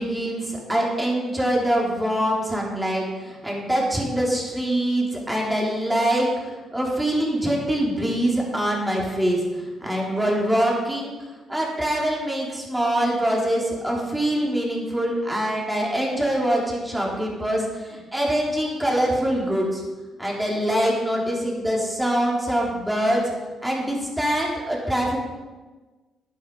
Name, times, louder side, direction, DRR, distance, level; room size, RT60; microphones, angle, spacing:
voice 1, 0.0-11.1 11.5-19.8 20.2-23.2 23.6-25.2, right 1 dB, 5° right, -3 dB, 3.6 m, -24 dB
11.0 x 9.7 x 5.5 m, 1.3 s
cardioid pair, 90°, 0 cm